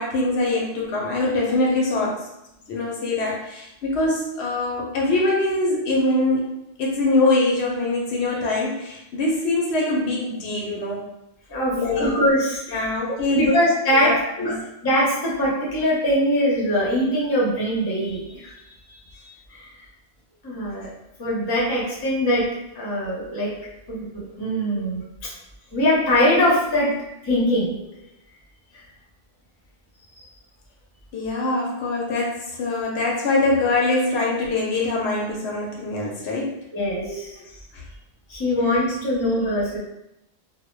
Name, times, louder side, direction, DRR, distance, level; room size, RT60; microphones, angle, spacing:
voice 1, 0.0-2.3 2.7-6.4 6.8-11.1 11.7-12.1 12.7-13.6 13.9-14.6 24.8-24.9 31.1-36.6 37.1-37.8, left 2 dB, 75° left, -2 dB, 0.8 m, -23 dB
voice 2, 11.5-12.9 13.3-14.6 14.8-18.6 19.2-19.7 20.4-20.9 21.2-22.5 22.7-23.5 23.9-25.3 25.7-26.9 27.2-27.8 36.7-37.4 38.3-39.8, equal, 25° left, -6 dB, 0.6 m, -22 dB
2.1 x 2.0 x 3.0 m, 0.85 s
omnidirectional pair, 1.1 m